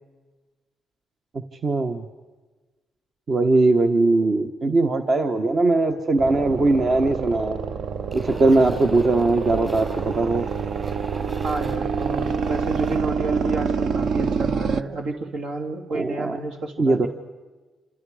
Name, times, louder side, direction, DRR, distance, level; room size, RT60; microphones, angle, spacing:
voice 1, 1.6-2.0 3.3-7.6 8.1-10.4 15.9-16.4 16.8-17.1, right 2 dB, 45° right, 6 dB, 1.3 m, -20 dB
sound 1, 6.2-14.8, right 6 dB, 60° right, 0.8 m, -27 dB
sound 2, 8.1-13.0, right 1 dB, 15° right, 5.3 m, -44 dB
voice 2, 11.4-17.1, right 3 dB, 80° right, 2 dB, 3.1 m, -30 dB
28.0 x 27.0 x 5.0 m, 1.3 s
cardioid pair, 90°, 0 cm